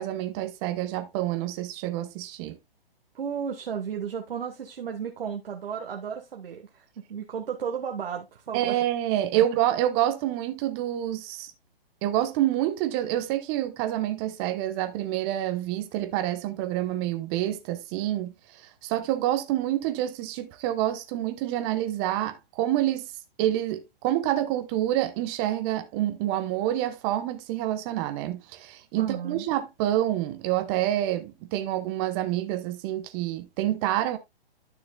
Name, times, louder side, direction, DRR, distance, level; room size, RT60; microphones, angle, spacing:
voice 1, 0.0-2.6 8.5-11.5 12.0-18.3 18.8-23.1 23.4-34.2, right 13 dB, 25° right, 1.0 m, -27 dB
voice 2, 3.1-8.8 9.3-9.4 29.0-29.4, right 7 dB, 70° right, 1.4 m, -34 dB
12.0 x 6.3 x 2.2 m
hypercardioid pair, 135°, 30 cm